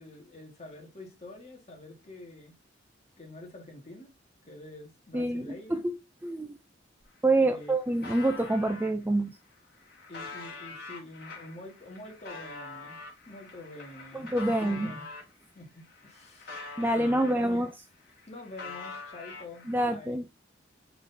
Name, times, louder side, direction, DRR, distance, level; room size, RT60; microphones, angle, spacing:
voice 1, 0.0-2.5 3.2-4.1 4.5-5.8 7.4-7.8 10.1-13.0 13.3-14.3 14.6-15.1 15.5-16.6 17.0-17.7 18.3-20.2, left 2 dB, 35° left, 1.6 m, -46 dB
voice 2, 5.1-5.9 6.2-6.6 7.2-9.4 14.1-14.9 16.8-17.7 19.7-20.2, right 1 dB, 10° right, 0.3 m, -27 dB
sound 1, 7.0-7.1 7.3-8.9 9.5-15.3 15.8-17.7 18.0-19.8, left 4 dB, 55° left, 2.1 m, -44 dB
4.8 x 3.9 x 2.7 m
head